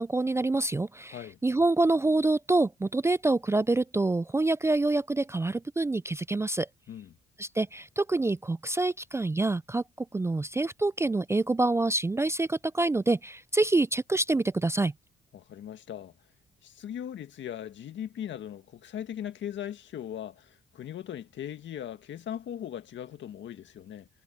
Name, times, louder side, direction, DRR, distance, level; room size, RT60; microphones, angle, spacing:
voice 1, 0.0-6.7 7.4-14.9, right 2 dB, 15° right, 0.4 m, -26 dB
voice 2, 15.3-16.1 16.6-24.1, left 10 dB, 65° left, 1.8 m, -39 dB
cardioid pair, 90°, 20 cm